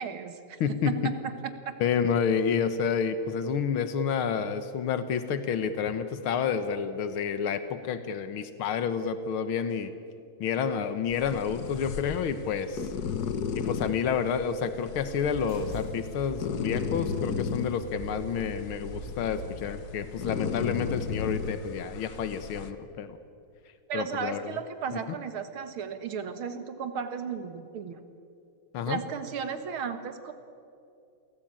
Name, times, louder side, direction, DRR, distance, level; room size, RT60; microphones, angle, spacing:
voice 1, 0.0-1.8 23.9-28.0 28.9-30.3, right 6 dB, 90° right, 9 dB, 2.4 m, -35 dB
voice 2, 0.6-1.1 1.8-9.9 10.4-12.9 13.6-23.2 23.9-24.4 25.1-25.2 28.7-29.0, left 7 dB, 90° left, 11 dB, 2.0 m, -29 dB
sound 1, 11.1-22.7, left 6 dB, 55° left, 1.6 m, -35 dB
sound 2, 15.3-21.4, right 2 dB, 30° left, 8.2 m, -44 dB
28.5 x 18.5 x 8.9 m, 2.5 s
omnidirectional pair, 2.2 m